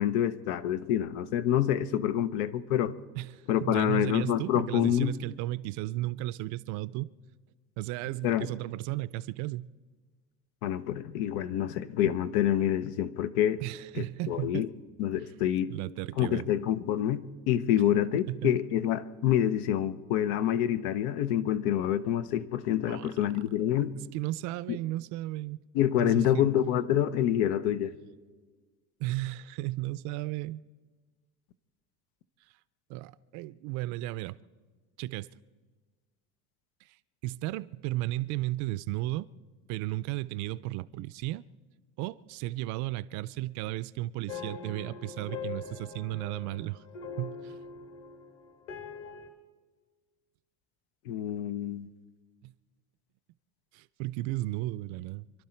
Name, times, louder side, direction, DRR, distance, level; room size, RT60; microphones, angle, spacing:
voice 1, 0.0-2.9 3.5-5.1 8.2-8.5 10.6-13.6 13.9-14.7 15.0-15.7 16.2-23.9 24.7-24.8 25.7-27.9 51.1-51.9, left 11 dB, 85° left, 0.9 m, -27 dB
voice 2, 3.2-7.1 7.8-9.7 13.6-14.7 15.7-16.5 18.3-18.6 22.9-23.1 24.0-25.6 26.0-26.5 29.0-30.6 32.9-34.4 35.0-35.3 37.2-39.3 39.7-41.4 42.0-46.8 47.2-47.6 52.4-52.5 53.7-55.2, right 17 dB, 60° right, 0.5 m, -34 dB
sound 1, 44.3-49.3, left 5 dB, 40° left, 1.6 m, -42 dB
26.5 x 12.0 x 4.4 m
cardioid pair, 160°, 34 cm